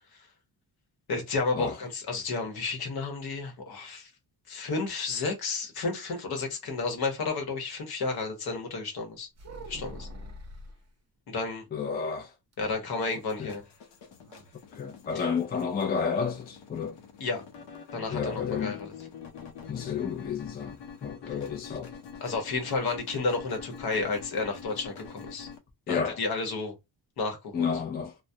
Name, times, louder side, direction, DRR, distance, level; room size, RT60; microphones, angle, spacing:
voice 1, 1.1-4.1 4.5-9.3 9.7-10.1 11.3-11.6 12.6-13.6 15.1-15.2 17.2-17.4 17.9-18.9 21.3-21.4 22.2-25.5 25.9-26.7 27.2-27.7, left 3 dB, 60° left, 0.9 m, -31 dB
sound 1, 9.4-10.8 12.5-13.5 13.8-13.9 14.2-14.5, equal, 40° right, 0.7 m, -44 dB
voice 2, 11.7-12.3 13.4-13.5 14.7-17.0 18.1-18.8 19.7-21.9 25.9-26.2 27.5-28.2, left 6 dB, 25° left, 0.4 m, -31 dB
sound 2, 13.0-25.6, left 6 dB, 85° left, 0.7 m, -46 dB
2.2 x 2.1 x 2.7 m
cardioid pair, 125°, 41 cm